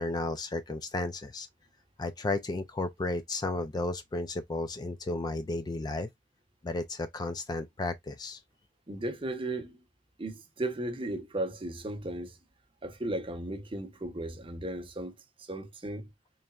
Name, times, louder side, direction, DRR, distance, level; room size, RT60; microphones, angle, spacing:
voice 1, 0.0-1.5 2.0-6.1 6.6-8.4, left 2 dB, 20° left, 0.3 m, -33 dB
voice 2, 8.9-9.8 10.2-12.4 12.8-16.1, right 1 dB, 30° right, 0.8 m, -36 dB
4.0 x 3.3 x 2.3 m
head